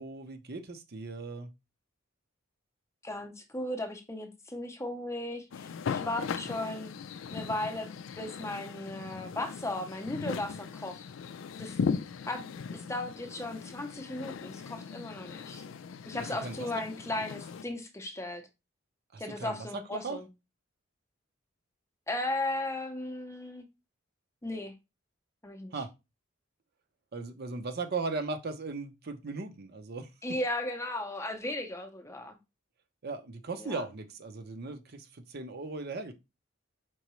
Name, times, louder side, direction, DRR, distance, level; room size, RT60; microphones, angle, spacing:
voice 1, 0.0-1.5 16.4-16.7 19.1-19.6 19.9-20.2 25.7-25.9 27.1-30.1 33.0-36.1, right 3 dB, 50° right, 0.7 m, -37 dB
voice 2, 3.0-6.9 7.3-7.9 8.2-11.0 11.6-11.8 12.3-15.6 16.1-18.4 19.2-20.3 22.1-23.7 24.4-24.7 25.4-25.7 30.2-32.4 33.6-33.8, left 1 dB, 15° left, 0.6 m, -36 dB
sound 1, 5.5-17.6, left 6 dB, 70° left, 0.4 m, -38 dB
4.5 x 3.8 x 3.1 m
head